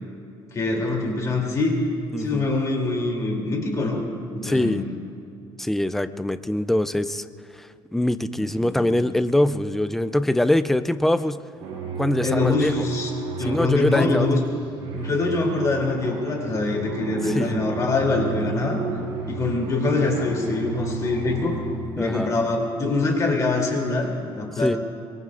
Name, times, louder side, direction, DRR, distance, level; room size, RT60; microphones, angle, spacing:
voice 1, 0.5-1.8 2.2-4.0 4.3-4.9 8.4-9.0 12.2-13.1 13.4-14.4 15.0-18.8 19.3-21.6 22.0-24.1 24.4-24.8, left 3 dB, 35° left, 0 dB, 3.0 m, -24 dB
voice 2, 2.1-2.5 4.4-4.8 5.6-7.3 7.5-11.4 12.0-12.9 13.4-14.3 15.0-15.1 17.2-17.6 22.0-22.3 24.5-24.8, left 1 dB, 5° left, 12 dB, 0.4 m, -23 dB
sound 1, 11.6-22.1, right 5 dB, 70° right, 3.8 m, -33 dB
25.0 x 22.0 x 2.5 m, 2.4 s
cardioid pair, 145°, 10 cm